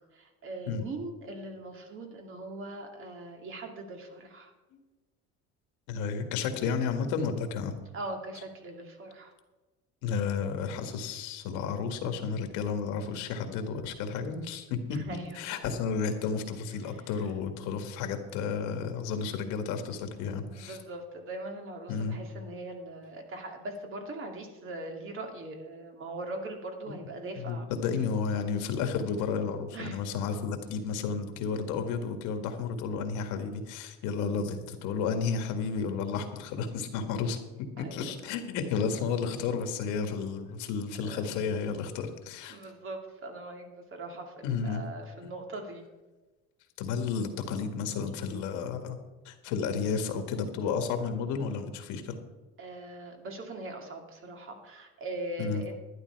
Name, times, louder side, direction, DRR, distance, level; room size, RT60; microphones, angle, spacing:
voice 1, 0.1-4.5 7.9-9.3 14.9-15.4 16.9-17.0 20.5-27.6 29.7-30.0 37.8-38.1 41.0-41.2 42.5-45.8 52.6-55.7, right 2 dB, 45° right, 3 dB, 2.6 m, -41 dB
voice 2, 5.9-7.7 10.0-20.8 21.9-22.2 27.4-37.4 37.8-42.6 44.4-44.8 46.8-49.0 49.3-52.2 55.4-55.6, left 5 dB, 80° left, 6 dB, 1.8 m, -32 dB
12.0 x 11.0 x 4.6 m, 1.2 s
cardioid pair, 120°, 29 cm